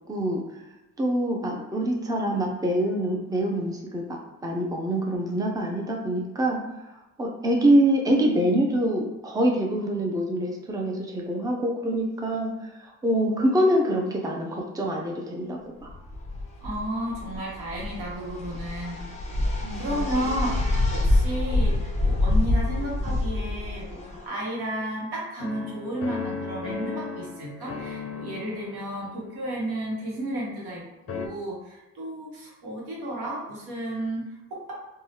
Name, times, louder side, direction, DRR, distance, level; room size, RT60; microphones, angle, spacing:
voice 1, 0.1-0.4 1.0-6.6 7.2-15.9 19.6-20.0, right 1 dB, 10° right, 0 dB, 0.5 m, -25 dB
sound 1, 15.9-24.2, left 2 dB, 20° left, 0.9 m, -26 dB
voice 2, 16.6-19.1 19.4-34.7, right 1 dB, 85° right, -4 dB, 1.1 m, -33 dB
sound 2, 25.4-30.8 31.1-31.3, left 5 dB, 40° left, 0.5 m, -37 dB
3.1 x 2.3 x 2.8 m, 0.97 s
cardioid pair, 75°, 37 cm